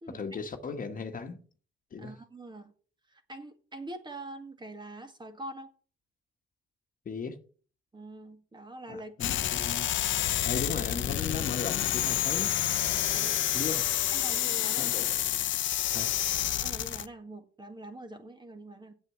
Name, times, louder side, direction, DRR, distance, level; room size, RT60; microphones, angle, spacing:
voice 1, 0.1-1.4 1.9-2.1 7.0-7.4 8.9-9.9 10.4-12.6 13.5-13.9 14.8-15.1 15.9-16.1, left 5 dB, 45° left, 1.4 m, -37 dB
voice 2, 2.0-2.7 3.1-5.7 7.9-9.6 13.1-13.5 14.1-15.0 16.6-18.9, right 1 dB, 20° right, 1.8 m, -44 dB
sound 1, 9.2-17.1, left 12 dB, 70° left, 0.8 m, -29 dB
8.1 x 7.7 x 7.0 m
cardioid pair, 90°, 20 cm